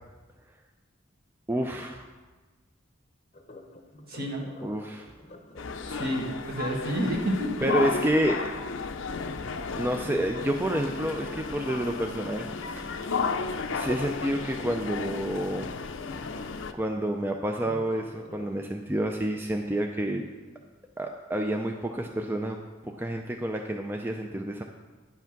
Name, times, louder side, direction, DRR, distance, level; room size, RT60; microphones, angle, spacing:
voice 1, 1.5-2.1 4.6-5.1 7.6-8.4 9.7-12.9 13.7-15.7 16.7-20.3 21.0-22.6 22.8-24.6, right 1 dB, 10° right, 3 dB, 0.4 m, -29 dB
Sink (filling or washing), 3.3-9.3 13.7-20.7 21.2-21.5 22.0-22.1, left 2 dB, 35° left, 0.8 m, -49 dB
voice 2, 4.1-4.4 5.9-7.7, equal, 50° right, 1 dB, 1.6 m, -29 dB
sound 1, 5.6-16.7, left 4 dB, 70° left, 0.6 m, -33 dB
10.0 x 5.8 x 5.9 m, 1.3 s
head